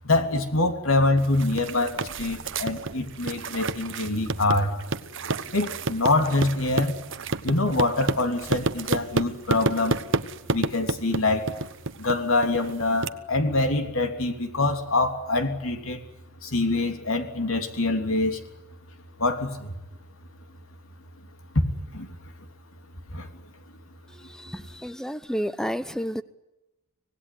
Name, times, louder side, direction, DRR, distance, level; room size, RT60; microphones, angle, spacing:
voice 1, 0.0-4.7 5.5-6.9 7.4-10.0 10.5-11.5 12.0-16.0 16.4-18.4 19.2-19.7 21.5-21.6 21.9-22.1 23.1-23.3, left 2 dB, 70° left, 3.3 m, -25 dB
sound 1, 1.2-13.1, right 3 dB, 60° right, 1.1 m, -30 dB
voice 2, 24.1-26.2, equal, 5° left, 0.9 m, -31 dB
25.5 x 18.5 x 9.6 m
head